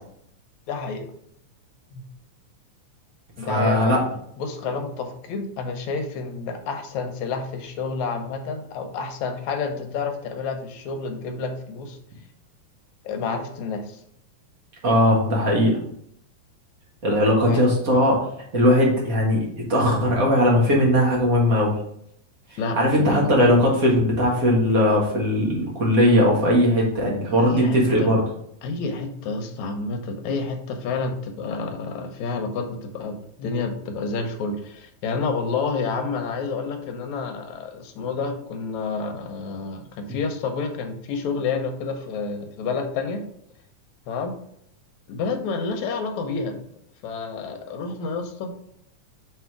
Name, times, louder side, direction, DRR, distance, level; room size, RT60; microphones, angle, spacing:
voice 1, 0.7-1.1 1.9-2.0 3.4-4.0 4.4-12.0 13.0-14.0 17.5-17.7 22.6-23.5 27.4-28.1 28.6-43.2 44.1-44.4 45.1-46.6 47.0-48.5, left 4 dB, 75° left, 5 dB, 2.0 m, -29 dB
voice 2, 3.4-4.0 14.8-15.8 17.0-18.3 18.5-21.7 22.7-28.2, equal, 45° right, -2 dB, 1.2 m, -19 dB
6.1 x 3.6 x 4.6 m, 0.71 s
omnidirectional pair, 3.5 m